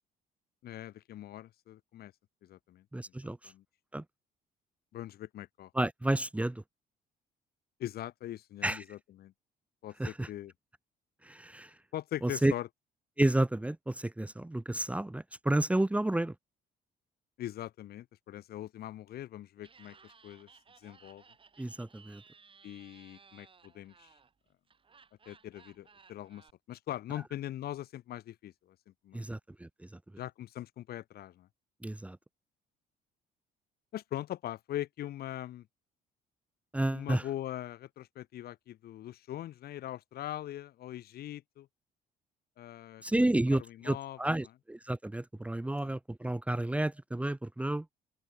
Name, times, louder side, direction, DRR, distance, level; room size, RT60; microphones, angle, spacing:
voice 1, 0.6-2.1 2.4-2.8 3.2-3.6 4.9-5.7 7.8-9.3 9.8-10.5 11.9-12.7 17.4-20.5 20.8-21.2 22.6-24.1 25.3-29.3 30.2-31.5 33.9-35.7 36.9-41.7 42.6-43.3 43.5-44.4 45.8-46.0, left 13 dB, 65° left, 4.5 m, -42 dB
voice 2, 2.9-3.5 3.9-4.0 5.7-6.6 8.6-8.8 10.0-10.3 11.2-11.7 12.2-12.5 13.2-16.3 21.6-22.2 29.1-29.9 31.8-32.2 36.7-37.2 43.0-47.9, right 1 dB, 10° right, 1.1 m, -31 dB
Laughter, 19.6-26.5, right 5 dB, 30° right, 7.5 m, -60 dB
open air
cardioid pair, 110°, 17 cm